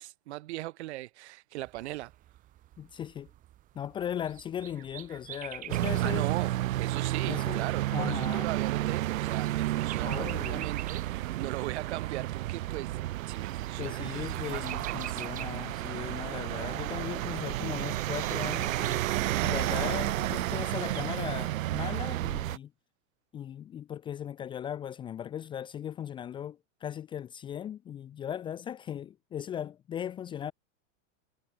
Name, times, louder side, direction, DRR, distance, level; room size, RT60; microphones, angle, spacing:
voice 1, 0.0-2.1 6.0-13.0 13.2-15.2, right 17 dB, 55° right, 2.1 m, -39 dB
sound 1, 1.6-21.2, right 14 dB, 20° right, 1.7 m, -48 dB
voice 2, 2.8-3.3 3.7-6.3 7.2-7.7 7.9-8.5 10.0-10.7 11.4-11.5 13.8-19.0 19.4-22.7 23.3-30.5, left 9 dB, 10° left, 0.8 m, -38 dB
sound 2, 5.7-22.6, right 15 dB, 90° right, 1.5 m, -31 dB
supercardioid pair, 180°, 39 cm